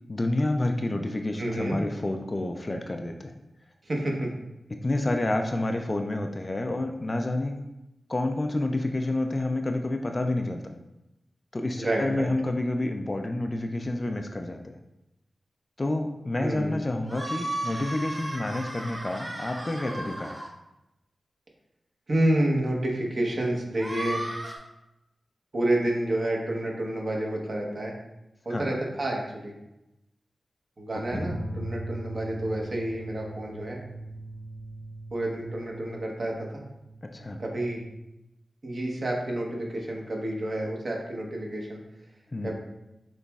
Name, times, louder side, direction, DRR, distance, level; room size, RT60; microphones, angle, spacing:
voice 1, 0.1-3.3 4.7-7.5 8.1-10.7 11.5-14.8 15.8-20.4 28.5-28.8 31.1-31.2 37.1-37.4 42.3-42.5, left 2 dB, 30° left, 4 dB, 0.3 m, -29 dB
voice 2, 1.4-1.8 3.8-4.3 11.8-12.3 16.4-16.7 22.1-24.2 25.5-27.9 28.4-29.5 30.8-33.8 35.1-36.6 37.4-37.8 38.6-41.8 42.4-42.5, right 1 dB, 50° right, -1 dB, 1.0 m, -29 dB
sound 1, 17.1-20.5 23.7-24.6, right 1 dB, 20° right, 1.5 m, -35 dB
sound 2, 31.1-38.0, right 1 dB, 85° right, 1.5 m, -39 dB
6.4 x 3.0 x 2.3 m, 0.92 s
wide cardioid pair, 100°, 0 cm